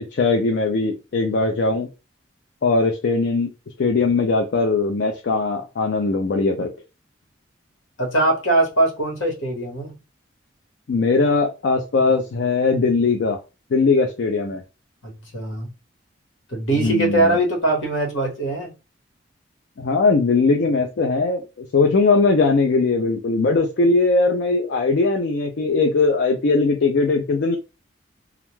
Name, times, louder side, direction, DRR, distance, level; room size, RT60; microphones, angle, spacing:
voice 1, 0.1-1.9 2.6-3.5 3.8-6.7 10.9-13.4 13.7-14.6 16.8-17.3 19.8-21.4 21.7-27.6, left 3 dB, 60° left, 0.4 m, -20 dB
voice 2, 8.0-10.0 15.0-15.7 16.5-18.8, right 2 dB, 80° left, 1.2 m, -21 dB
2.4 x 2.2 x 3.0 m
head